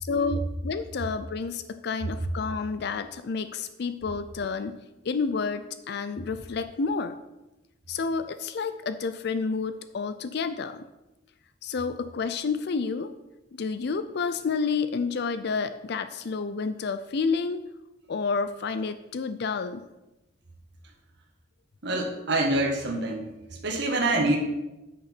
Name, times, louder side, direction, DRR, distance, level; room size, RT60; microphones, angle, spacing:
voice 1, 0.0-4.8 5.0-7.2 7.9-10.8 11.6-13.1 13.5-17.6 18.1-19.8, left 4 dB, 60° left, 11 dB, 0.4 m, -30 dB
voice 2, 21.8-23.3 23.6-24.4, right 2 dB, 60° right, 0 dB, 1.6 m, -25 dB
8.7 x 6.4 x 5.9 m, 1.0 s
head